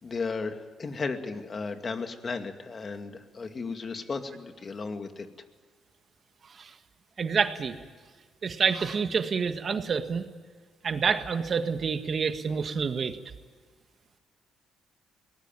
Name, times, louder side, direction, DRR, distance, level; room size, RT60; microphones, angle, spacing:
voice 1, 0.0-5.3, left 4 dB, 40° left, 6 dB, 2.3 m, -35 dB
voice 2, 7.2-7.8 8.4-10.3 10.8-13.2, right 5 dB, 50° right, 8 dB, 1.8 m, -28 dB
22.5 x 19.0 x 9.1 m, 1.5 s
cardioid pair, 90°, 0 cm